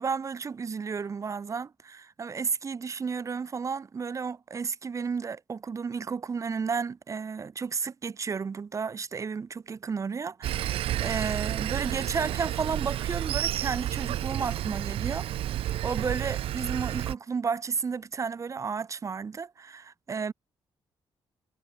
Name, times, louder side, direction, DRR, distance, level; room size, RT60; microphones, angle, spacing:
voice 1, 0.0-20.3, right 5 dB, 35° right, 1.4 m, -33 dB
Sawing, 10.4-17.1, right 13 dB, 75° right, 0.6 m, -31 dB
cardioid pair, 125°, 10 cm